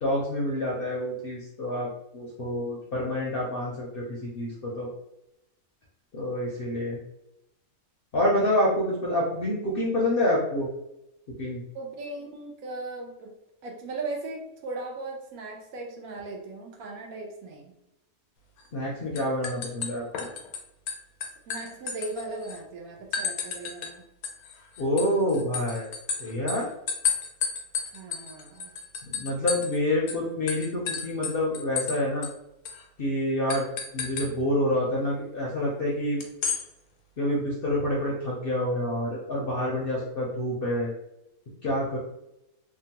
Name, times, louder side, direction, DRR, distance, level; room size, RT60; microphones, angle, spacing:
voice 1, 0.0-1.9 2.1-4.9 6.1-7.0 8.1-10.7 11.4-11.6 18.7-20.3 24.8-25.9 26.2-26.7 29.0-32.3 33.0-33.7 33.9-36.2 37.2-40.9 41.6-42.0, left 1 dB, 60° left, -3 dB, 0.6 m, -27 dB
voice 2, 11.7-13.3 13.6-17.7 21.5-24.0 27.9-28.7, right 3 dB, 80° right, 1 dB, 1.1 m, -38 dB
sound 1, 18.6-18.9 19.2-20.6 20.9-22.6 23.1-23.9 24.2-29.8 30.1-30.2 30.5-32.0 32.2-32.3 32.7-32.8 33.5-34.3 36.2-36.6, left 6 dB, 90° left, 1.1 m, -32 dB
2.9 x 2.2 x 2.8 m, 0.85 s
omnidirectional pair, 1.5 m